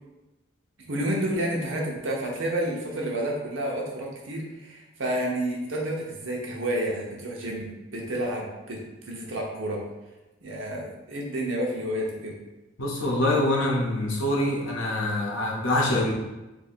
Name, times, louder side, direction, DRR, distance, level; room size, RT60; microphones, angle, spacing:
voice 1, 0.9-9.8 10.4-12.4, right 1 dB, 70° right, -1 dB, 0.8 m, -30 dB
voice 2, 12.8-16.1, left 1 dB, 75° left, -2 dB, 0.8 m, -25 dB
2.8 x 2.6 x 4.2 m, 1.0 s
head